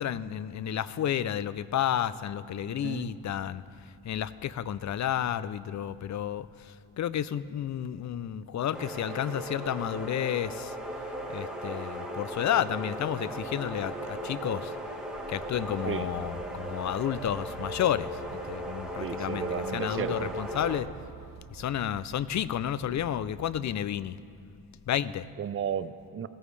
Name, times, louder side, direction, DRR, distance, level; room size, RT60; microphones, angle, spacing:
voice 1, 0.0-3.6 4.0-10.7 11.3-14.7 15.3-20.9 21.5-24.2 24.9-25.2, left 10 dB, 45° left, 17 dB, 0.4 m, -31 dB
voice 2, 2.7-3.1 11.2-11.3 15.9-16.1 19.0-20.3 25.4-26.3, right 8 dB, 35° right, 14 dB, 0.5 m, -34 dB
sound 1, 8.7-20.8, equal, ahead, 1.6 m, -37 dB
sound 2, 15.1-23.6, right 6 dB, 55° right, 0.9 m, -49 dB
15.5 x 14.5 x 3.3 m, 2.5 s
cardioid pair, 85°, 41 cm